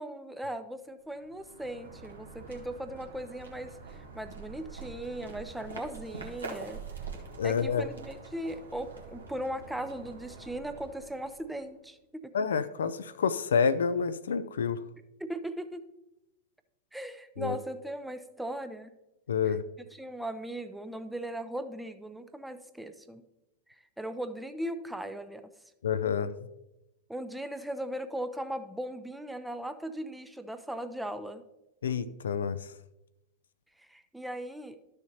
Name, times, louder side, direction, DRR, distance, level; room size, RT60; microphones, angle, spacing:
voice 1, 0.0-6.8 7.4-12.3 15.2-15.8 16.9-18.9 19.4-19.6 19.9-23.2 24.0-25.5 27.1-31.4 33.8-34.8, right 1 dB, 5° right, 9 dB, 0.6 m, -38 dB
sound 1, 1.0-11.8, right 4 dB, 70° right, 1.4 m, -45 dB
voice 2, 7.4-7.8 12.3-14.8 17.4-17.6 19.3-19.6 25.8-26.3 31.8-32.6, left 6 dB, 65° left, 13 dB, 0.4 m, -28 dB
12.5 x 6.5 x 2.8 m, 0.94 s
figure-of-eight pair, 90°, 0 cm